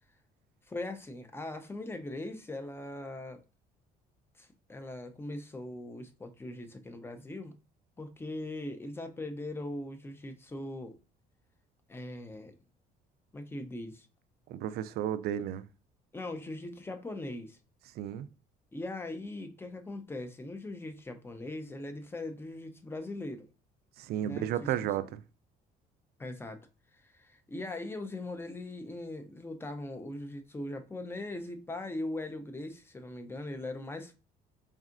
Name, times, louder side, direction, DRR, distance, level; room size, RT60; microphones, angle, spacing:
voice 1, 0.7-3.4 4.4-7.5 8.0-11.0 11.9-12.5 13.3-14.1 16.1-17.6 18.7-23.5 24.2-24.7 25.0-25.1 26.2-26.6 26.9-34.1, left 2 dB, 15° left, 0.6 m, -40 dB
voice 2, 14.5-15.7 18.0-18.3 24.0-25.2, right 11 dB, 70° right, 0.4 m, -33 dB
4.0 x 3.5 x 2.5 m
cardioid pair, 110°, 17 cm